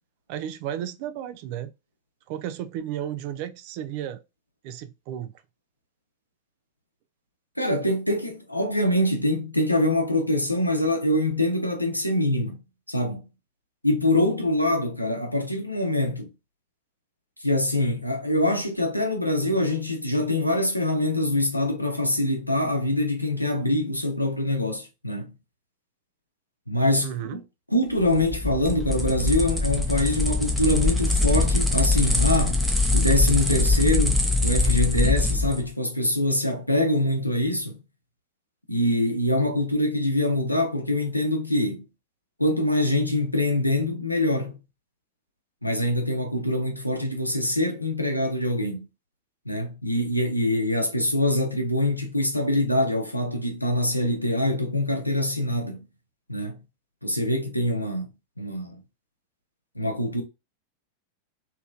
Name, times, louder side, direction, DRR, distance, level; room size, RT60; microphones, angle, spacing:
voice 1, 0.3-1.7 2.3-4.2 4.6-5.3 27.0-27.4, right 10 dB, 45° right, 0.4 m, -33 dB
voice 2, 7.6-12.6 12.9-13.2 13.8-16.3 17.4-25.3 26.7-27.4 27.7-32.6 32.9-37.8 38.7-41.8 42.4-44.6 45.6-48.9 49.5-55.8 56.3-56.6 57.0-58.1 58.4-58.8 59.7-60.2, left 1 dB, 90° left, 0.7 m, -24 dB
sound 1, 28.0-35.6, left 2 dB, ahead, 0.7 m, -23 dB
3.0 x 2.9 x 2.4 m
figure-of-eight pair, 90°, 0 cm